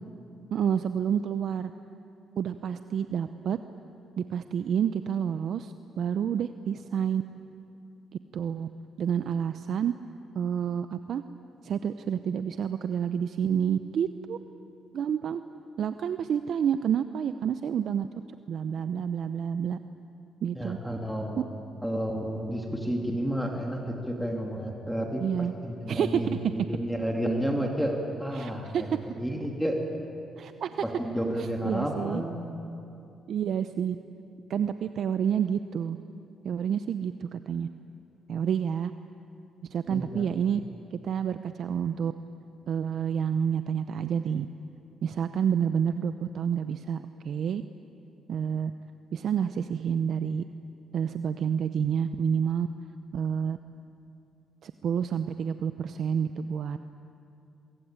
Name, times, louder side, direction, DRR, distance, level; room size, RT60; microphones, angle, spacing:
voice 1, 0.5-1.7 2.4-3.6 4.2-7.2 8.3-8.7 9.0-9.9 10.3-11.2 11.6-14.4 14.9-15.4 15.8-18.1 18.5-19.8 20.4-20.8 21.4-21.5 25.2-25.5 25.9-26.3 28.3-28.8 30.4-30.8 31.4-32.2 33.3-34.0 34.5-36.0 36.4-37.7 38.3-38.9 39.7-40.6 40.9-42.1 42.7-44.5 45.0-47.6 48.3-48.7 49.1-50.4 50.9-52.7 53.1-53.6 54.6-56.8, right 8 dB, 65° right, 10 dB, 0.7 m, -29 dB
voice 2, 20.5-21.4 21.8-25.3 25.6-29.8 30.8-32.3 39.9-40.3, equal, ahead, 0 dB, 2.6 m, -31 dB
24.0 x 23.0 x 8.9 m, 2.8 s
cardioid pair, 90°, 0 cm